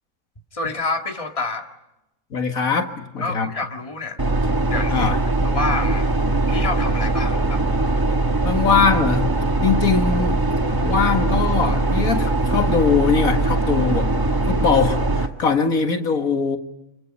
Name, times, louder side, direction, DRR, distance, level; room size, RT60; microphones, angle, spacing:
voice 1, 0.5-1.7 3.2-4.2 4.6-5.1 5.4-6.1 6.5-7.6, left 3 dB, 25° left, 3 dB, 2.0 m, -28 dB
voice 2, 2.3-3.5 4.9-5.2 8.4-9.4 9.6-10.4 10.8-14.1 14.5-16.6, left 5 dB, 75° left, 6 dB, 2.2 m, -21 dB
sound 1, 4.2-15.3, right 2 dB, 15° right, 1.4 m, -21 dB
30.0 x 27.0 x 5.5 m, 0.92 s
omnidirectional pair, 1.5 m